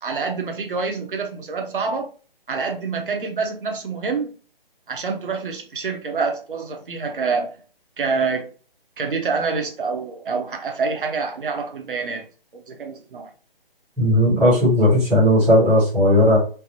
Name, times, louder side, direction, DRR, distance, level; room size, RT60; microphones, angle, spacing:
voice 1, 0.0-2.1 2.5-4.3 4.9-7.6 8.0-8.5 9.0-12.3 12.5-13.3, right 4 dB, 60° right, 0.8 m, -26 dB
voice 2, 14.0-16.4, left 1 dB, 5° right, 0.7 m, -16 dB
3.3 x 2.1 x 2.7 m
figure-of-eight pair, 155°, 30 cm